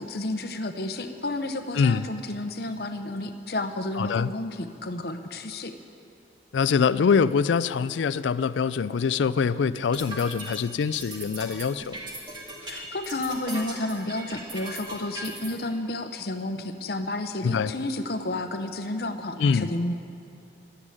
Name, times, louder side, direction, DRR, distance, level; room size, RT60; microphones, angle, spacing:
voice 1, 0.0-5.7 12.6-19.9, left 2 dB, 55° left, 7 dB, 0.8 m, -31 dB
voice 2, 1.7-2.1 4.0-4.3 6.5-12.0 17.4-17.7 19.4-19.7, left 6 dB, 85° left, 16 dB, 0.4 m, -24 dB
sound 1, 9.8-15.5, right 1 dB, 25° right, 1.9 m, -38 dB
12.0 x 9.8 x 9.1 m, 2.6 s
head